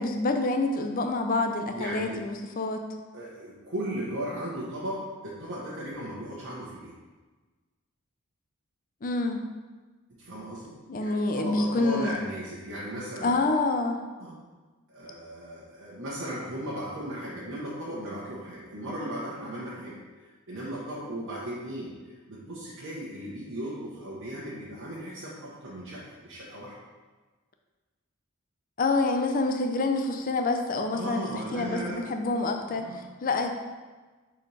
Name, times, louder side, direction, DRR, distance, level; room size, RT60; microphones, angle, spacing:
voice 1, 0.0-2.8 9.0-9.4 10.9-12.1 13.2-14.0 28.8-33.5, left 3 dB, 40° left, 5 dB, 0.5 m, -27 dB
voice 2, 1.7-2.2 3.1-6.9 10.2-13.3 14.2-14.4 14.9-20.0 20.2-26.8 30.9-32.0 32.7-33.0, right 1 dB, 60° right, -8 dB, 1.1 m, -36 dB
6.7 x 4.2 x 3.3 m, 1.3 s
head